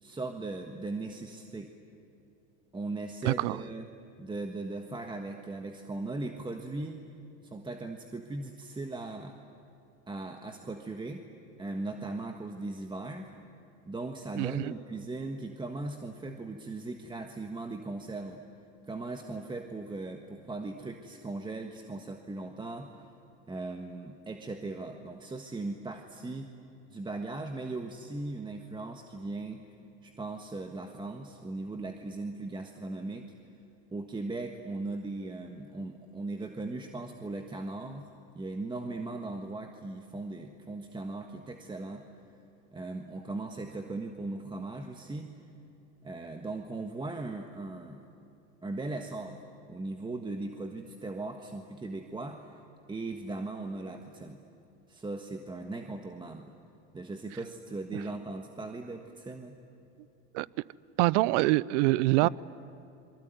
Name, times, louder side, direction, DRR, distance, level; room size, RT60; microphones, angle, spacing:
voice 1, 0.0-1.7 2.7-3.9 4.2-7.0 7.4-9.4 10.1-11.2 11.6-13.3 13.9-18.4 18.8-22.9 23.5-26.5 26.9-29.7 30.0-33.3 33.9-38.1 38.3-42.1 42.7-45.3 46.0-48.0 48.6-49.4 49.7-52.6 52.9-54.4 54.9-56.5 56.9-59.6 62.2-62.3, right 2 dB, 10° right, 1.5 m, -38 dB
voice 2, 3.2-3.6 14.4-14.7 60.3-60.5 61.0-62.3, right 20 dB, 65° right, 0.7 m, -25 dB
27.0 x 23.5 x 9.4 m
supercardioid pair, 115°, 38 cm